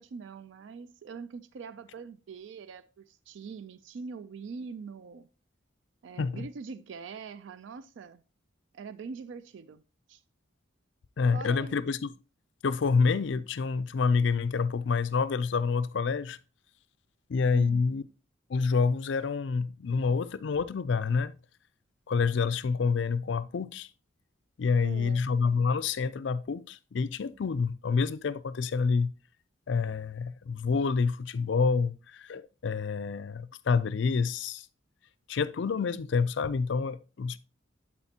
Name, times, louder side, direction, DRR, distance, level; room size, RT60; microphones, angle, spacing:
voice 1, 0.0-5.3 6.0-8.2 8.7-9.8 10.1-10.2 11.3-11.8 12.9-13.0 17.5-17.8 24.8-25.3, right 5 dB, 65° right, 0.3 m, -43 dB
voice 2, 11.2-12.1 12.6-16.4 17.3-18.0 18.5-21.3 22.1-23.9 24.6-29.1 29.7-34.7 35.3-37.4, left 5 dB, 65° left, 0.4 m, -28 dB
11.5 x 4.3 x 2.8 m
head